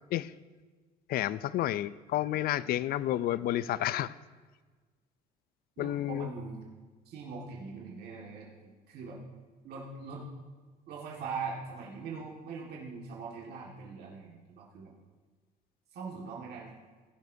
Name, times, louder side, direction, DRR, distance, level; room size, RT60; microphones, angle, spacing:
voice 1, 1.1-4.1 5.8-6.3, left 13 dB, 60° left, 0.4 m, -30 dB
voice 2, 5.8-6.6 7.1-9.2 9.6-10.3 10.9-14.9 15.9-16.7, right 5 dB, 70° right, 1.9 m, -41 dB
17.0 x 11.0 x 2.7 m
cardioid pair, 110°, 17 cm